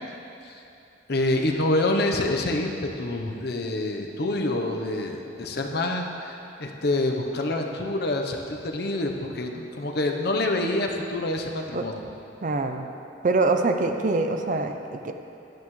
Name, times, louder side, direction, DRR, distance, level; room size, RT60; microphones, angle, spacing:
voice 1, 1.1-12.0, left 2 dB, 60° left, 2 dB, 0.9 m, -27 dB
voice 2, 12.4-12.9 13.2-15.1, right 3 dB, 45° right, 6 dB, 0.5 m, -24 dB
12.0 x 10.5 x 3.2 m, 2.8 s
head